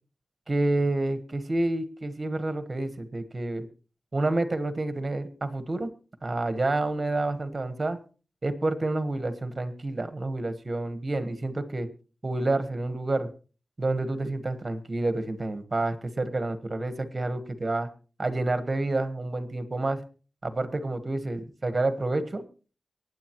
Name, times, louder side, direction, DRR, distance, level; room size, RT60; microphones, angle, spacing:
voice 1, 0.5-3.6 4.1-5.9 6.2-8.0 8.4-11.9 12.2-13.3 13.8-17.9 18.2-20.0 20.4-22.4, right 2 dB, 35° right, 10 dB, 1.3 m, -29 dB
23.5 x 9.4 x 3.1 m, 0.37 s
wide cardioid pair, 115°, 0 cm